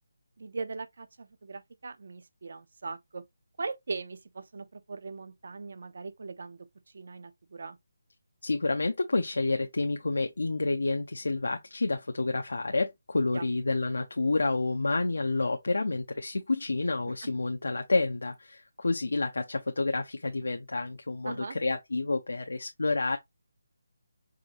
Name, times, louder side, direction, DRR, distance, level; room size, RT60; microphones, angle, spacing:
voice 1, 0.4-3.2 3.6-6.6 6.9-7.8 13.3-13.5 21.2-21.6, right 4 dB, 60° right, 0.6 m, -39 dB
voice 2, 8.4-23.2, left 3 dB, 90° left, 0.6 m, -29 dB
5.0 x 2.5 x 2.9 m
hypercardioid pair, 170°, 0 cm